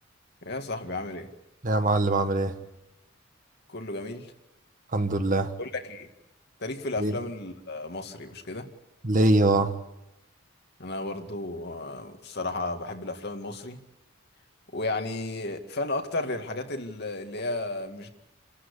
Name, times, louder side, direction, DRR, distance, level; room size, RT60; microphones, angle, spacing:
voice 1, 0.4-1.3 3.7-4.3 5.6-6.1 6.6-8.7 10.8-13.8 14.7-18.1, left 2 dB, 55° left, 5 dB, 2.2 m, -33 dB
voice 2, 1.6-2.5 4.9-5.5 7.0-7.1 9.0-9.7, right 2 dB, 40° right, 8 dB, 1.5 m, -23 dB
28.0 x 13.5 x 8.4 m, 0.93 s
head